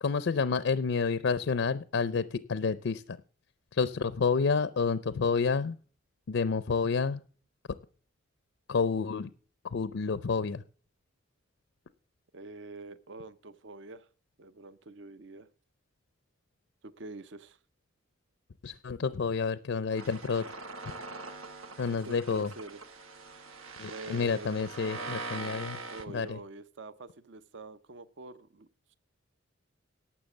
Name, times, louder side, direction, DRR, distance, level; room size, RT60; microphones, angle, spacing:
voice 1, 0.0-3.2 3.7-5.8 6.3-7.2 8.7-9.3 9.6-10.6 18.6-20.4 21.8-22.5 23.8-25.8 26.1-26.4, left 5 dB, 65° left, 0.5 m, -29 dB
voice 2, 12.3-14.1 14.4-15.5 16.8-17.6 21.9-22.8 23.8-25.1 25.9-29.0, right 3 dB, 60° right, 0.6 m, -46 dB
sound 1, 20.0-26.0, right 3 dB, 90° right, 1.2 m, -42 dB
11.5 x 7.3 x 7.2 m
head